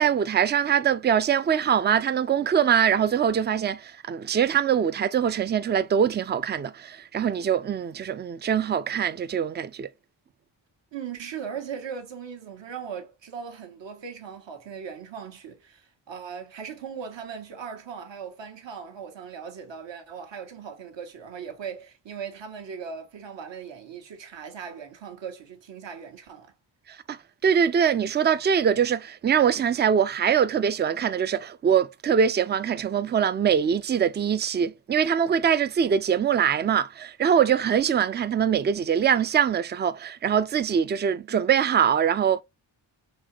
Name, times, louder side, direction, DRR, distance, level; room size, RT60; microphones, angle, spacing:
voice 1, 0.0-9.9 27.1-27.2 27.4-42.4, right 8 dB, 25° right, 0.3 m, -23 dB
voice 2, 10.9-26.5, right 7 dB, 65° right, 1.1 m, -38 dB
4.0 x 2.9 x 3.1 m
supercardioid pair, 45°, 47 cm